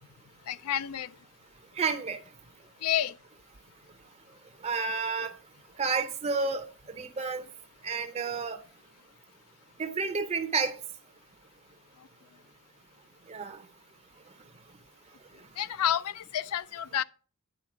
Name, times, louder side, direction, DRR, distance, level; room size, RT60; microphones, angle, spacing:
voice 1, 0.5-1.1 2.8-3.1 15.6-17.0, left 10 dB, 85° left, 0.4 m, -29 dB
voice 2, 1.8-2.2 4.6-5.3 5.8-6.7 7.0-7.4 7.8-8.6 9.8-10.7 13.3-13.6, right 4 dB, 30° right, 0.5 m, -30 dB
9.7 x 4.0 x 5.8 m
head